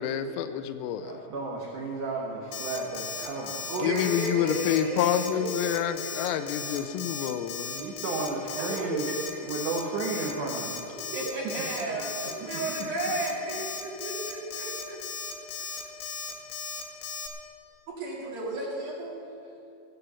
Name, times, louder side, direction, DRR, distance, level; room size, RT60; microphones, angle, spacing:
voice 1, 0.0-1.1 3.8-7.8, left 10 dB, 90° left, 10 dB, 3.3 m, -28 dB
voice 2, 1.0-4.0 7.8-9.1 9.4-10.8, right 3 dB, 85° right, -3 dB, 1.7 m, -33 dB
Alarm, 2.5-17.3, left 5 dB, 70° left, 2.4 m, -36 dB
voice 3, 3.7-6.8 8.5-8.7 9.1-9.5 11.1-15.0 15.5-15.8 18.0-19.3, right 2 dB, 55° right, -4 dB, 3.6 m, -34 dB
17.5 x 7.7 x 7.0 m, 2.7 s
omnidirectional pair, 5.8 m